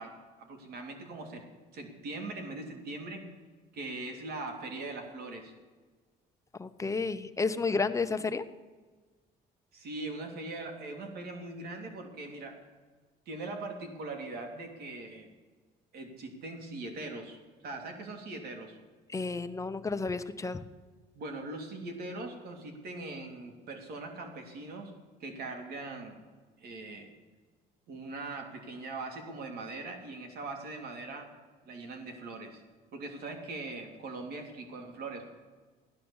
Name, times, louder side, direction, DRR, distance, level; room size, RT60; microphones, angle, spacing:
voice 1, 0.0-3.3 3.7-5.5 9.7-12.6 13.3-15.3 15.9-17.4 17.6-18.8 21.1-24.9 25.2-26.2 26.6-27.1 27.9-31.3 31.6-32.6 32.9-35.3, right 2 dB, 65° right, 4 dB, 3.1 m, -41 dB
voice 2, 6.6-8.4 19.1-20.6, left 4 dB, 20° left, 9 dB, 0.8 m, -31 dB
16.0 x 11.0 x 7.2 m, 1.4 s
cardioid pair, 110°, 17 cm